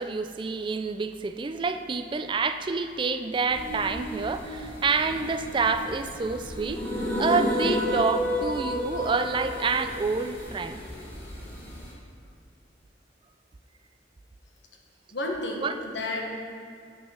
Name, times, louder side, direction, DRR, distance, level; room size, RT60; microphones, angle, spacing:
voice 1, 0.0-10.8 15.6-15.7, right 4 dB, 25° right, 9 dB, 0.3 m, -28 dB
sound 1, 3.5-11.9, equal, 15° left, 1.9 m, -32 dB
voice 2, 15.1-16.3, left 2 dB, 75° left, 1 dB, 1.3 m, -31 dB
9.0 x 6.1 x 6.2 m, 2.3 s
head